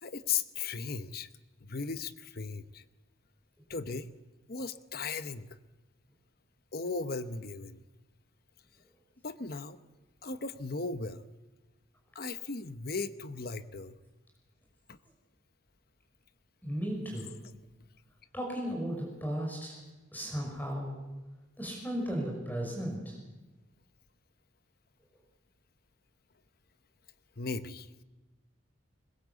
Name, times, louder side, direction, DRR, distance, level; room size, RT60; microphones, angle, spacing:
voice 1, 0.0-1.3 1.6-2.8 3.7-4.1 4.5-5.6 6.7-7.8 9.2-9.8 10.2-11.2 12.1-14.0 14.9-15.0 27.4-27.9, left 4 dB, 45° left, 12 dB, 0.9 m, -37 dB
voice 2, 16.6-17.3 18.3-19.8 20.1-20.9 21.6-23.2, equal, 10° left, -2 dB, 5.6 m, -35 dB
21.5 x 21.0 x 8.3 m, 1.1 s
head